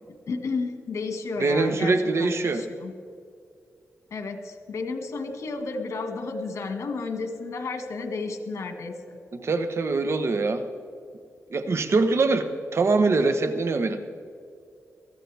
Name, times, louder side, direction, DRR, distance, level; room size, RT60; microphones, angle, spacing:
voice 1, 0.3-2.9 4.1-9.2, left 3 dB, 75° left, 5 dB, 1.9 m, -32 dB
voice 2, 1.4-2.6 9.3-10.7 11.5-14.0, right 3 dB, 60° right, 8 dB, 1.2 m, -23 dB
23.0 x 15.0 x 3.5 m, 2.4 s
cardioid pair, 80°, 5 cm